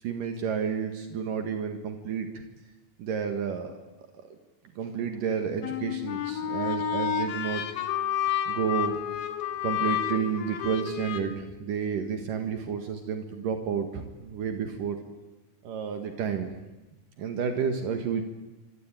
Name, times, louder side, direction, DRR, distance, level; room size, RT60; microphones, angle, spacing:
voice 1, 0.0-2.4 3.0-3.7 4.8-7.6 8.5-9.0 9.6-15.0 15.6-16.5 17.2-18.2, right 7 dB, 65° right, 6 dB, 3.3 m, -30 dB
sound 1, 5.6-11.2, left 9 dB, 90° left, 3.7 m, -30 dB
27.0 x 24.5 x 9.1 m, 1.1 s
omnidirectional pair, 4.2 m